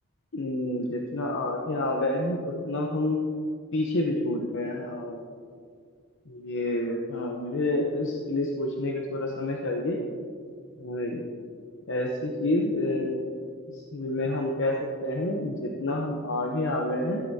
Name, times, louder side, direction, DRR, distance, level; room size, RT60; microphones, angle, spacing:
voice 1, 0.3-3.2 3.7-5.2 6.4-10.0 10.8-11.2 11.9-13.2 13.9-14.8 15.0-17.2, left 1 dB, 65° left, 0 dB, 0.8 m, -28 dB
13.5 x 7.8 x 2.8 m, 2.1 s
head